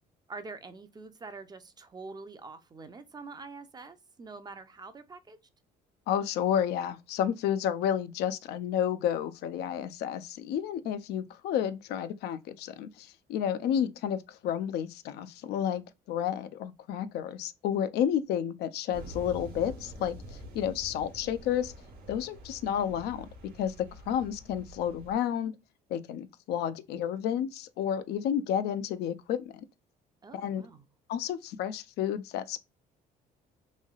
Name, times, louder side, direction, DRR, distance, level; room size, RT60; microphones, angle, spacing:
voice 1, 0.3-5.4 30.2-30.9, right 4 dB, 25° right, 0.5 m, -45 dB
voice 2, 6.1-21.7 22.1-23.3 23.6-25.5 25.9-29.5 30.3-30.7 31.1-32.6, left 9 dB, 75° left, 0.4 m, -31 dB
sound 1, 18.9-25.1, right 1 dB, 60° right, 1.0 m, -46 dB
3.1 x 2.7 x 2.3 m
cardioid pair, 110°, 17 cm